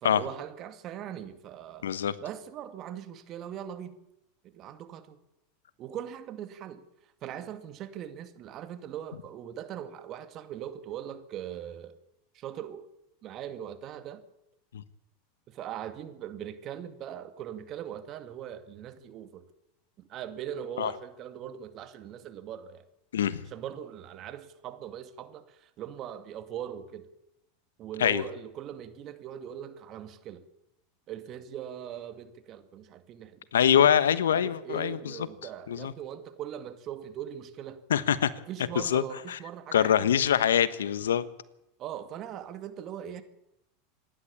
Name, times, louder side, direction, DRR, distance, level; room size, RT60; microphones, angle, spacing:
voice 1, 0.0-1.9 2.2-4.0 4.4-5.2 5.8-6.8 7.2-12.0 12.3-12.9 13.2-14.2 15.5-19.5 20.0-22.8 23.5-27.1 27.8-30.5 31.1-33.4 34.3-37.8 38.5-40.1 41.8-43.2, right 10 dB, 45° right, 2.3 m, -40 dB
voice 2, 1.8-2.1 20.8-20.9 23.1-23.4 28.0-28.2 33.5-35.0 35.7-35.9 37.9-38.3 38.7-39.4 39.7-41.2, left 9 dB, 90° left, 1.2 m, -24 dB
27.0 x 11.5 x 8.6 m
hypercardioid pair, 105°, 0 cm